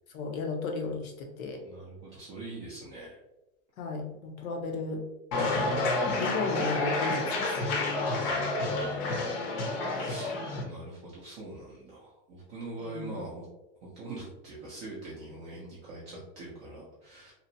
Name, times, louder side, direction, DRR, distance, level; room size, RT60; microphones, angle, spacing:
voice 1, 0.1-1.6 3.8-5.1 5.3-7.6 12.8-13.2, left 3 dB, 80° left, 2 dB, 0.8 m, -35 dB
voice 2, 1.6-3.2 8.2-9.4 9.9-10.3 10.6-13.4 13.8-17.3, right 2 dB, 20° right, -6 dB, 0.3 m, -43 dB
sound 1, 5.3-10.6, left 2 dB, 45° left, 0.7 m, -29 dB
2.9 x 2.1 x 2.6 m, 0.93 s
supercardioid pair, 135°, 41 cm